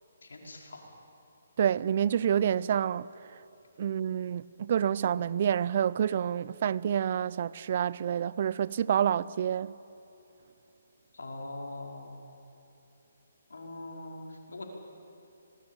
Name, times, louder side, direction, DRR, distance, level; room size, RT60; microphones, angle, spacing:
voice 1, 0.2-0.8 11.1-12.2 13.5-14.6, left 2 dB, 80° left, 5.1 m, -42 dB
voice 2, 1.6-3.1 3.8-9.7, right 9 dB, 45° right, 0.7 m, -28 dB
26.0 x 20.5 x 9.0 m
hypercardioid pair, 145°, 0 cm